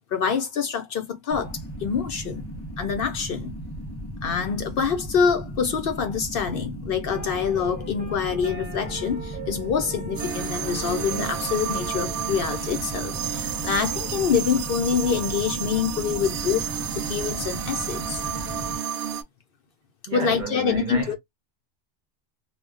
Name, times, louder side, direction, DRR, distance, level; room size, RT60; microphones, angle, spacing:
voice 1, 0.1-2.4 2.8-3.5 4.2-16.7 17.0-18.2 20.1-21.1, left 6 dB, 60° left, 0.7 m, -26 dB
sound 1, 1.3-18.8, equal, 25° left, 0.8 m, -36 dB
sound 2, 7.1-12.3, right 3 dB, 10° right, 0.8 m, -40 dB
sound 3, 10.1-19.2, right 9 dB, 80° right, 0.9 m, -31 dB
voice 2, 20.1-21.1, right 4 dB, 50° right, 0.7 m, -31 dB
2.2 x 2.1 x 3.6 m
omnidirectional pair, 1.2 m